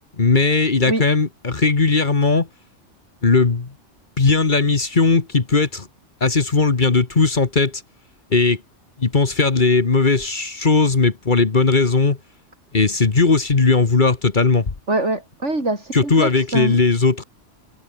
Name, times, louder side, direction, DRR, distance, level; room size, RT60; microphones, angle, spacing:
voice 1, 0.2-2.5 3.2-3.7 4.2-5.9 6.2-7.8 8.3-8.6 9.0-12.2 12.7-14.7 15.9-17.2, left 4 dB, 40° left, 1.6 m, -17 dB
voice 2, 14.9-16.7, right 2 dB, 70° right, 5.3 m, -24 dB
omnidirectional pair, 1.3 m